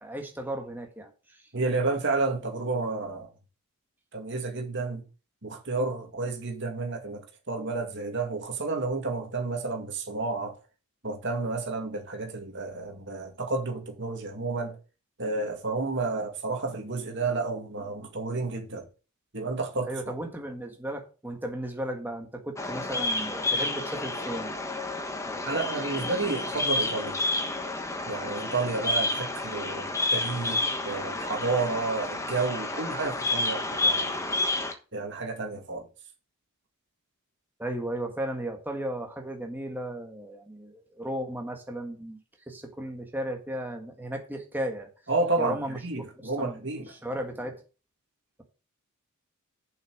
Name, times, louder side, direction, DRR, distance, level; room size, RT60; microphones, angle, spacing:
voice 1, 0.0-1.4 19.9-24.6 25.2-25.4 37.6-42.2 42.5-44.9 45.4-46.0 46.4-46.6 47.0-47.6, right 1 dB, 10° right, 1.7 m, -35 dB
voice 2, 1.5-3.3 4.1-5.0 5.4-10.6 11.0-14.8 15.2-18.9 19.3-19.9 25.5-27.2 28.1-34.2 34.9-35.9 45.1-46.9, right 3 dB, 55° right, 2.2 m, -31 dB
Bird vocalization bird call bird song, 22.6-34.7, left 2 dB, 15° left, 1.2 m, -30 dB
7.4 x 5.8 x 6.4 m
head